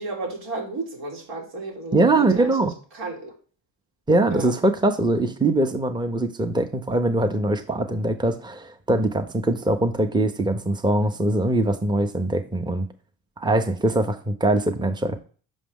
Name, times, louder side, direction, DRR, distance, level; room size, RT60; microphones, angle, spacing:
voice 1, 0.0-3.3 4.3-4.5, right 2 dB, 80° right, -2 dB, 2.6 m, -33 dB
voice 2, 1.9-2.7 4.1-12.9 13.4-15.2, right 2 dB, 10° right, 7 dB, 0.9 m, -22 dB
6.2 x 5.0 x 3.7 m, 0.40 s
supercardioid pair, 55°, 46 cm